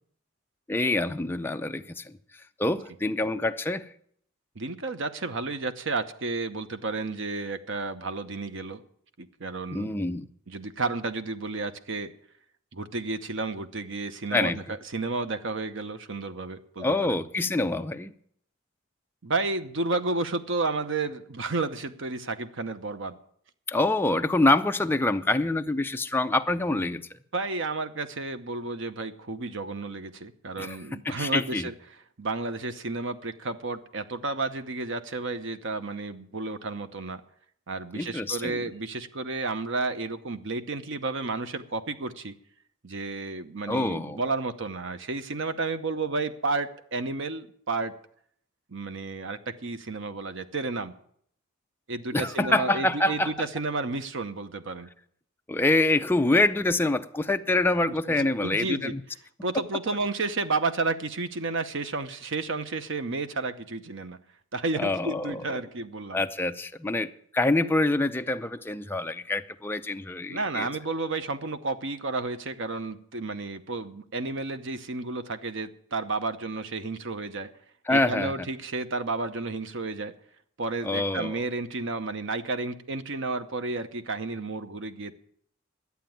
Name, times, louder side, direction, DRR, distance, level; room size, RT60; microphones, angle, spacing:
voice 1, 0.7-2.1 2.6-3.9 9.7-10.3 14.3-14.6 16.8-18.1 23.7-27.1 30.6-30.8 31.0-31.7 37.9-38.7 43.7-44.2 52.1-53.3 55.5-59.0 64.7-65.4 66.1-70.7 77.9-78.5 80.8-81.4, left 2 dB, 10° left, 0.5 m, -26 dB
voice 2, 4.6-8.8 9.2-9.9 10.5-12.1 12.7-17.2 19.2-23.2 27.3-31.7 32.2-37.2 37.7-42.3 42.8-47.9 48.7-50.9 51.9-54.9 57.9-58.9 59.4-64.2 64.5-66.2 70.3-77.5 77.9-80.1 80.6-85.1, right 3 dB, 65° right, 0.9 m, -32 dB
11.5 x 8.3 x 9.2 m
head